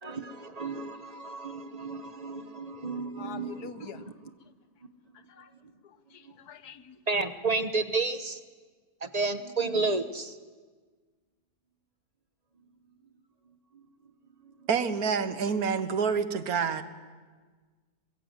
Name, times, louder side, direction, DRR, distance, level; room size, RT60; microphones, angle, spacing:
voice 1, 0.0-4.0 7.1-8.4 9.0-10.4, right 3 dB, 30° right, 10 dB, 0.9 m, -31 dB
voice 2, 3.2-4.0 5.3-5.5 5.8-7.0, left 8 dB, 90° left, 12 dB, 1.5 m, -45 dB
voice 3, 14.7-16.8, right 6 dB, 70° right, 11 dB, 1.6 m, -27 dB
22.5 x 21.5 x 8.1 m, 1.4 s
omnidirectional pair, 1.6 m